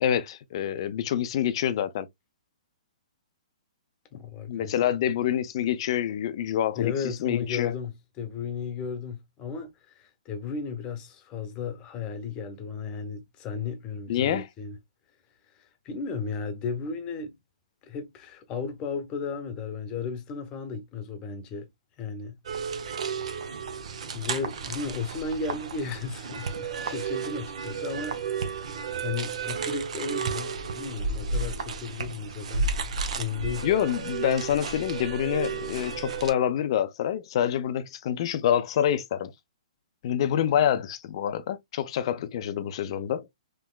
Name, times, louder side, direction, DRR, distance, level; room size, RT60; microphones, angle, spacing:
voice 1, 0.0-2.1 4.5-7.7 14.1-14.5 33.6-39.3 40.0-43.3, left 10 dB, 45° left, 0.4 m, -27 dB
voice 2, 4.1-4.7 6.7-14.8 15.6-17.4 17.9-21.7 22.0-22.4 24.1-32.7 33.2-33.7, left 5 dB, 25° left, 0.8 m, -35 dB
sound 1, 22.4-36.3, right 5 dB, 65° right, 0.7 m, -32 dB
3.5 x 2.9 x 2.2 m
hypercardioid pair, 140°, 4 cm